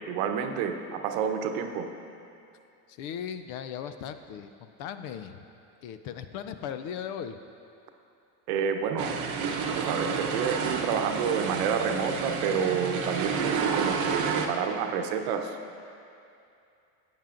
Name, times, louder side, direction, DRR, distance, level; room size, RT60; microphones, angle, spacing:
voice 1, 0.1-1.9 8.5-9.1 9.7-15.6, right 7 dB, 65° right, 5 dB, 0.9 m, -29 dB
voice 2, 2.9-5.4 5.8-7.4, left 8 dB, 50° left, 9 dB, 0.5 m, -37 dB
sound 1, 9.0-14.5, right 5 dB, 35° right, 0.8 m, -30 dB
15.0 x 9.0 x 2.5 m, 2.6 s
supercardioid pair, 140°, 49 cm